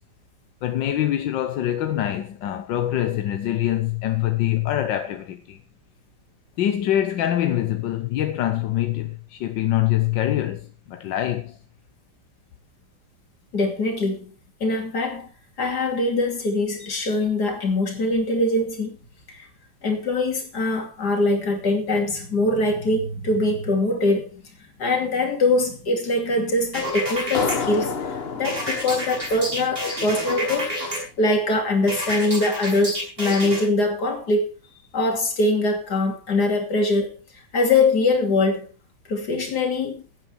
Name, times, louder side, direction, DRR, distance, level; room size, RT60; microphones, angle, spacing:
voice 1, 0.6-5.6 6.6-11.6, left 12 dB, 85° left, 1.6 m, -24 dB
voice 2, 13.5-14.3 14.6-15.3 15.6-19.0 19.3-19.5 19.8-24.4 24.8-34.5 34.9-37.1 37.5-38.7 39.1-40.0, left 2 dB, 60° left, 3.2 m, -23 dB
sound 1, 26.7-27.6 28.4-31.0 31.9-33.6, equal, 30° right, 6.1 m, -29 dB
sound 2, 27.3-30.7, left 5 dB, 40° left, 1.1 m, -30 dB
16.0 x 9.1 x 4.4 m
omnidirectional pair, 2.0 m